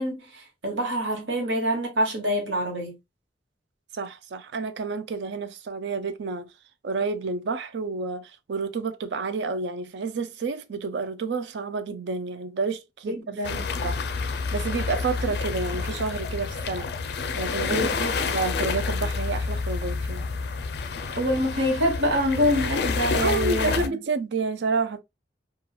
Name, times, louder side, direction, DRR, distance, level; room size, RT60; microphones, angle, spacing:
voice 1, 0.0-3.0 13.0-13.7 17.7-18.1 21.2-24.0, equal, 90° right, 1.1 m, -26 dB
voice 2, 3.9-6.5 6.8-13.3 13.8-14.0 14.5-16.9 17.4-17.8 18.2-20.3 23.2-25.0, right 4 dB, 70° right, 0.4 m, -29 dB
sound 1, 13.4-23.9, left 4 dB, 60° left, 0.4 m, -29 dB
3.0 x 2.3 x 2.2 m
head